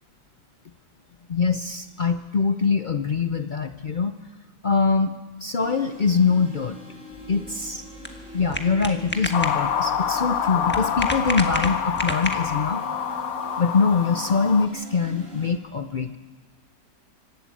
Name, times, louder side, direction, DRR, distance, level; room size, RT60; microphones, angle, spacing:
voice 1, 1.3-4.1 4.6-5.1 5.4-6.8 7.3-7.8 8.3-12.8 13.6-16.2, left 5 dB, 75° left, 8 dB, 0.4 m, -23 dB
sound 1, 5.6-15.5, right 1 dB, 40° right, 5.1 m, -43 dB
sound 2, 7.1-12.7, left 1 dB, 5° left, 1.2 m, -32 dB
sound 3, 9.3-14.7, left 8 dB, 60° left, 1.2 m, -27 dB
25.0 x 12.5 x 8.4 m, 1.3 s
omnidirectional pair, 1.8 m